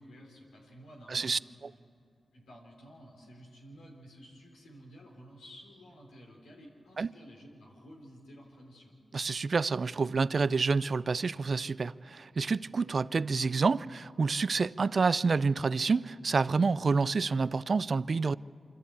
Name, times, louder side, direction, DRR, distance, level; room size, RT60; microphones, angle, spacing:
voice 1, 0.0-1.4 2.3-9.0, equal, 90° left, 3.4 m, -52 dB
voice 2, 1.1-1.4 7.0-7.1 9.1-18.3, right 4 dB, 55° right, 0.4 m, -28 dB
25.5 x 13.5 x 8.4 m
cardioid pair, 45°, 0 cm